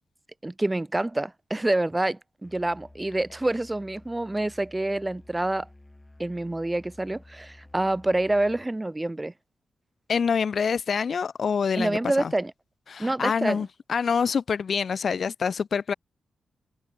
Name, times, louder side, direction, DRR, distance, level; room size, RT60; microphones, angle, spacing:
voice 1, 0.4-5.7 6.2-9.3 11.8-12.5 13.0-13.7, right 2 dB, 15° right, 0.6 m, -27 dB
Musical instrument, 2.4-8.8, left 2 dB, 15° left, 1.1 m, -52 dB
voice 2, 10.1-12.3 12.9-15.9, left 6 dB, 50° left, 0.4 m, -26 dB
wide cardioid pair, 135°, 0 cm